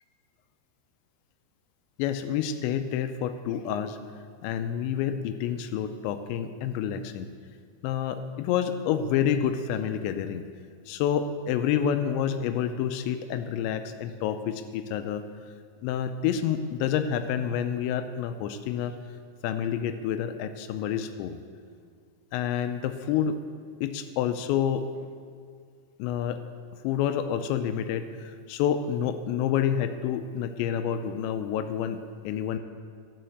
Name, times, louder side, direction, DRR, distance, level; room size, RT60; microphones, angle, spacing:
voice 1, 2.0-4.0 4.4-7.3 7.8-10.4 10.9-15.2 15.8-19.0 19.4-21.4 22.3-23.4 23.8-24.9 26.0-26.4 26.8-32.6, left 9 dB, 85° left, 9 dB, 2.7 m, -28 dB
11.0 x 6.5 x 7.7 m, 2.1 s
omnidirectional pair, 5.4 m